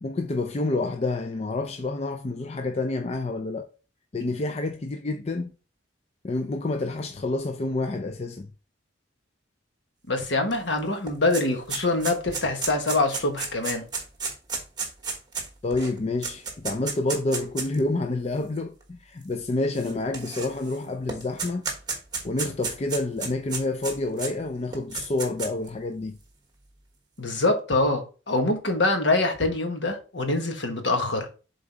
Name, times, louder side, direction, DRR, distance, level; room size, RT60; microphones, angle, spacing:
voice 1, 0.0-3.7 4.1-5.5 6.2-8.5 15.6-21.6 22.2-26.2, left 2 dB, 35° left, 0.4 m, -28 dB
voice 2, 10.1-13.8 27.2-31.3, left 2 dB, 70° left, 1.4 m, -24 dB
sound 1, 10.5-10.6 10.8-17.8 18.6-18.7 19.7-20.8 21.1-24.3 24.7-25.7, right 5 dB, 20° right, 1.3 m, -32 dB
7.2 x 3.9 x 3.9 m
head